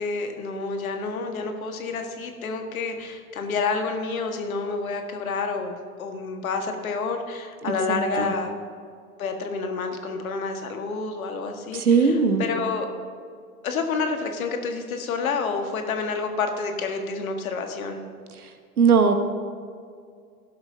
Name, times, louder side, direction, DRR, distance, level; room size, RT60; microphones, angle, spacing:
voice 1, 0.0-8.5 9.2-12.9 13.6-18.0, left 4 dB, 65° left, 5 dB, 1.7 m, -29 dB
voice 2, 7.6-8.3 11.7-12.4 18.8-19.1, right 5 dB, 75° right, 8 dB, 1.3 m, -20 dB
17.5 x 12.0 x 2.7 m, 2.1 s
figure-of-eight pair, 90°, 45 cm